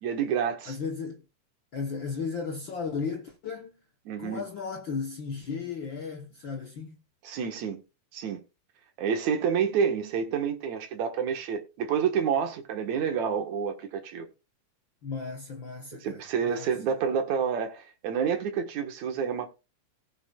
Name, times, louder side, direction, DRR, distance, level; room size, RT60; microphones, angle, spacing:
voice 1, 0.0-0.8 4.1-4.4 7.2-7.8 8.1-8.4 9.0-14.3 16.0-19.5, right 7 dB, 65° right, 2.6 m, -28 dB
voice 2, 0.7-1.2 1.7-3.8 4.2-7.0 15.0-16.7, left 5 dB, 70° left, 1.1 m, -35 dB
18.5 x 7.2 x 2.4 m
omnidirectional pair, 3.8 m